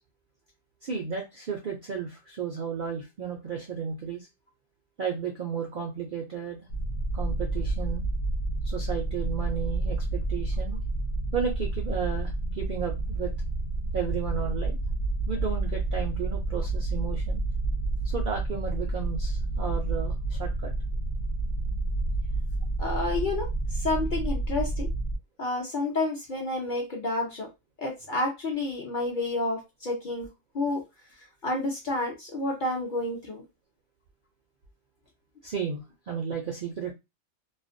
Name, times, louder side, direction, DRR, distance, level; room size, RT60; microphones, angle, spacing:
voice 1, 0.8-4.3 5.0-6.7 7.1-8.0 8.6-10.8 11.3-13.3 13.9-14.8 15.3-17.4 18.0-20.7 35.4-36.9, right 6 dB, 70° right, 2 dB, 0.5 m, -33 dB
sound 1, 6.7-25.2, right 2 dB, 70° left, 1.0 m, -29 dB
voice 2, 22.8-24.9 25.4-27.5 27.8-30.3 30.5-30.8 31.4-33.4, left 2 dB, 55° left, 0 dB, 0.6 m, -30 dB
2.4 x 2.0 x 2.5 m, 0.23 s
omnidirectional pair, 1.4 m